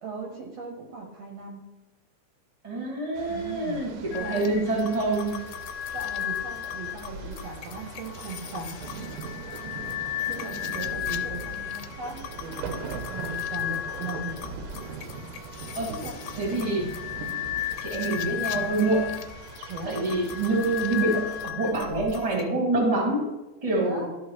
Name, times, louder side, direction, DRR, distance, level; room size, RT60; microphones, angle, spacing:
voice 1, 0.0-1.6 3.3-3.8 4.1-4.5 5.9-9.1 10.3-14.4 15.9-16.2 17.1-17.3 19.6-20.3 23.8-24.1, right 3 dB, 65° right, 0 dB, 1.9 m, -38 dB
voice 2, 2.6-5.4 10.4-10.5 15.8-15.9 16.4-16.9 17.8-19.1 19.9-23.3 23.6-24.1, right 2 dB, 15° right, -3 dB, 1.7 m, -26 dB
sound 1, 3.1-21.5, right 5 dB, 85° right, 2.3 m, -41 dB
sound 2, 4.1-22.4, left 11 dB, 85° left, 2.1 m, -35 dB
12.5 x 4.5 x 3.1 m, 1.1 s
omnidirectional pair, 3.5 m